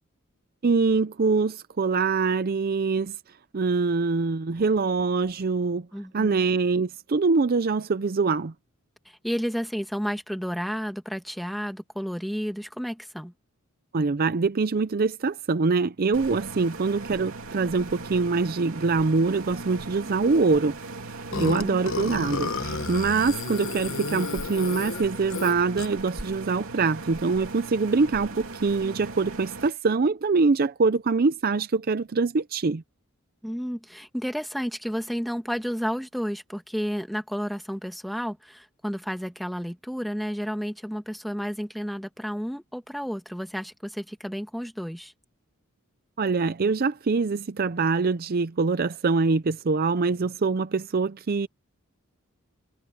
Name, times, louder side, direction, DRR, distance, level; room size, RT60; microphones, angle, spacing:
voice 1, 0.6-3.2 3.5-5.9 6.1-8.5 13.9-20.8 21.4-32.8 46.2-51.5, right 4 dB, 45° right, 0.5 m, -24 dB
voice 2, 5.9-6.5 9.1-13.3 21.3-21.8 33.4-45.1, equal, ahead, 1.9 m, -31 dB
sound 1, 16.1-29.7, right 3 dB, 70° right, 3.1 m, -39 dB
Burping eructation, 21.3-26.1, left 4 dB, 65° left, 1.1 m, -32 dB
head